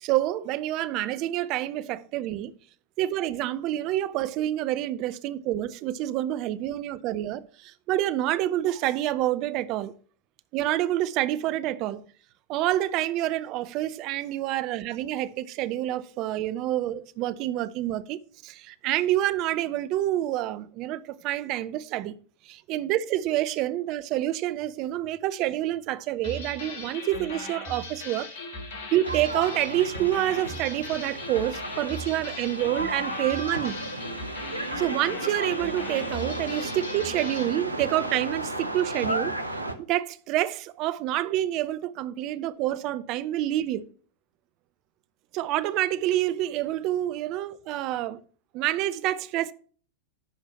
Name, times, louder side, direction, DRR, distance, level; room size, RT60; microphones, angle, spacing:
voice 1, 0.0-2.5 3.0-9.9 10.5-12.0 12.5-22.1 22.5-28.3 28.9-33.8 34.8-39.3 39.8-43.8 45.3-48.2 48.5-49.5, right 13 dB, 40° right, 0.6 m, -28 dB
sound 1, 26.2-37.5, left 2 dB, 55° left, 1.9 m, -39 dB
sound 2, 29.0-39.8, right 1 dB, 85° right, 0.9 m, -34 dB
11.0 x 4.6 x 5.7 m
figure-of-eight pair, 90°, 0 cm